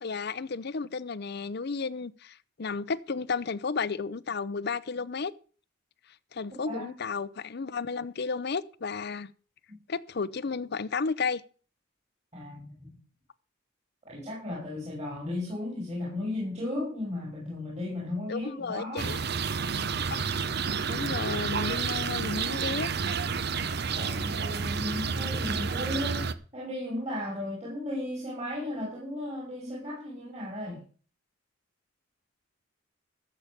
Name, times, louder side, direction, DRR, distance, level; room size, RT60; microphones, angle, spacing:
voice 1, 0.0-5.3 6.3-9.3 9.9-11.4 18.3-19.2 20.1-20.2 20.9-22.9, left 4 dB, 55° left, 0.6 m, -33 dB
voice 2, 12.3-13.0 14.1-19.1 23.9-26.3 26.5-30.8, left 1 dB, 35° right, 5.1 m, -35 dB
sound 1, 19.0-26.3, right 5 dB, 55° right, 0.7 m, -30 dB
13.0 x 7.3 x 6.6 m
head